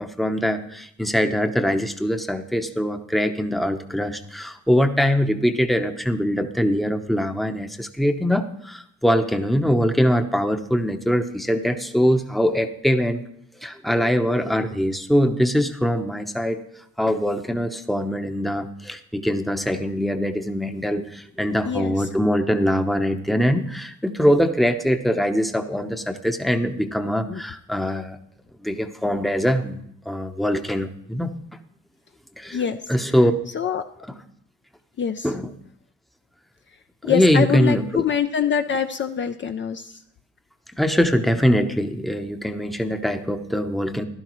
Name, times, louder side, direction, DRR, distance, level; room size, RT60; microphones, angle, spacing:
voice 1, 0.0-13.2 13.6-16.6 17.0-28.2 28.6-31.4 32.4-33.3 34.0-34.2 35.2-35.5 37.0-38.1 40.8-44.1, equal, ahead, 7 dB, 0.8 m, -22 dB
voice 2, 37.0-39.9, left 8 dB, 40° left, 8 dB, 0.5 m, -24 dB
15.0 x 11.5 x 3.1 m, 0.69 s
cardioid pair, 90°, 30 cm